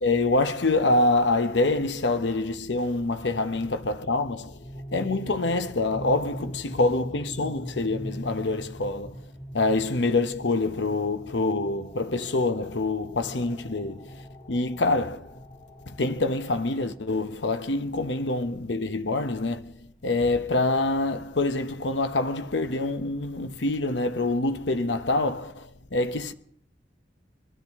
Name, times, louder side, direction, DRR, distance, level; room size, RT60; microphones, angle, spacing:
voice 1, 0.0-4.6 4.9-9.2 9.5-14.2 14.5-15.3 16.0-19.8 20.0-26.3, left 2 dB, 85° left, 0.9 m, -26 dB
sound 1, 3.1-17.9, equal, 40° left, 2.4 m, -42 dB
24.0 x 13.5 x 3.6 m
head